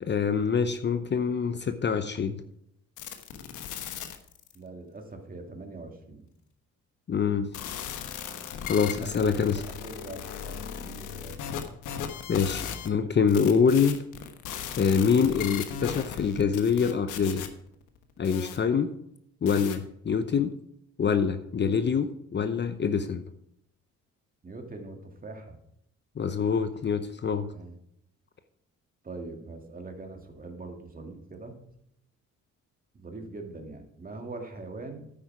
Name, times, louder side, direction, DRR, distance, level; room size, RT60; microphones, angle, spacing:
voice 1, 0.0-2.4 7.1-7.5 8.7-9.6 12.3-14.0 14.8-17.5 18.2-18.9 19.4-20.5 21.0-23.2 26.2-27.5, left 6 dB, 35° left, 10 dB, 0.8 m, -25 dB
sound 1, 3.0-4.6 7.5-12.9 13.3-18.6 19.5-19.8, left 8 dB, 90° left, 1.2 m, -37 dB
voice 2, 4.5-6.3 9.0-9.4 9.6-11.4 24.4-25.6 27.5-27.8 29.0-31.6 32.9-35.1, right 2 dB, 30° right, 4 dB, 2.2 m, -42 dB
10.0 x 8.8 x 4.9 m, 0.75 s
cardioid pair, 90°, 30 cm